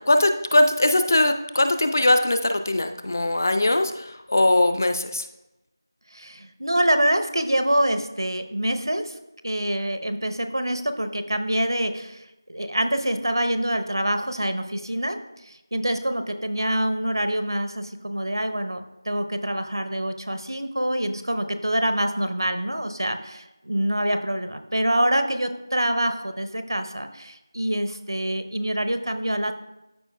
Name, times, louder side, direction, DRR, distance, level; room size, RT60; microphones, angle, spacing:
voice 1, 0.1-5.3, left 1 dB, 45° left, 8 dB, 0.5 m, -21 dB
voice 2, 6.1-9.2 9.4-15.2 15.4-29.5, right 1 dB, 85° right, 8 dB, 0.8 m, -26 dB
13.0 x 4.6 x 2.3 m, 0.94 s
figure-of-eight pair, 170°, 2 cm